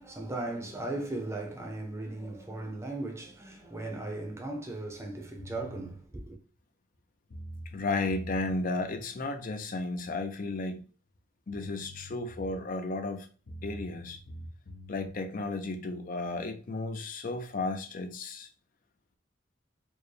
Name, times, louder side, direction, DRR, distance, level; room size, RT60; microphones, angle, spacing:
voice 1, 0.0-6.4, right 2 dB, 15° right, 0.7 m, -37 dB
sound 1, 5.4-5.9 7.0-7.1 7.3-9.0 11.1-11.2 11.5-12.7 13.5-15.1, equal, 85° left, 0.8 m, -45 dB
voice 2, 7.7-10.8 11.5-13.3 13.6-14.2 14.9-18.5, left 3 dB, 45° left, 0.5 m, -33 dB
4.4 x 2.2 x 3.2 m
head